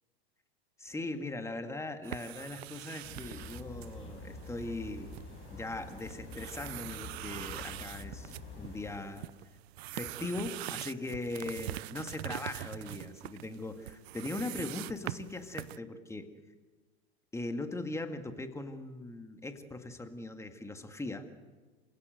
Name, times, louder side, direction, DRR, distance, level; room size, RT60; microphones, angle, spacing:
voice 1, 0.8-5.1 5.5-9.3 9.9-16.3 17.3-21.3, left 2 dB, 10° left, 7 dB, 2.0 m, -40 dB
sound 1, 2.0-15.8, right 17 dB, 65° right, 0.6 m, -44 dB
sound 2, 3.0-9.0, left 3 dB, 40° left, 7.0 m, -47 dB
27.5 x 16.5 x 8.0 m, 1.3 s
hypercardioid pair, 100°, 33 cm